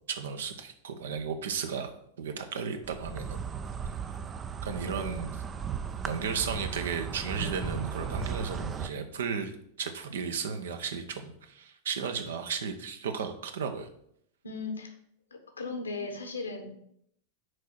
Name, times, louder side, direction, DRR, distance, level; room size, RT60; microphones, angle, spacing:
voice 1, 0.1-1.9 2.2-3.4 4.6-5.4 6.0-13.9, right 6 dB, 60° right, 7 dB, 0.9 m, -34 dB
Insect, 2.8-8.9, right 7 dB, 20° right, 0.5 m, -36 dB
voice 2, 4.8-5.3 14.4-14.9 15.3-16.7, left 3 dB, 75° left, 5 dB, 1.3 m, -37 dB
6.5 x 4.6 x 6.2 m, 0.71 s
figure-of-eight pair, 90°, 0 cm